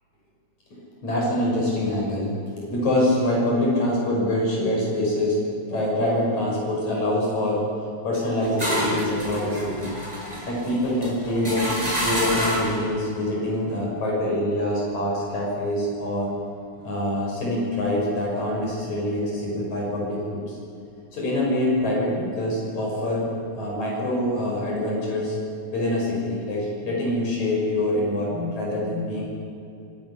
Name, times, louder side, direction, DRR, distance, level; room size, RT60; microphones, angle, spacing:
voice 1, 0.7-5.4 5.7-7.7 8.0-10.0 10.5-16.3 16.8-20.6 21.1-25.4 25.7-29.2, left 1 dB, 75° left, -4 dB, 7.5 m, -25 dB
sound 1, 8.1-12.8, equal, 10° right, 7.4 m, -28 dB
25.5 x 22.5 x 9.9 m, 2.7 s
omnidirectional pair, 3.3 m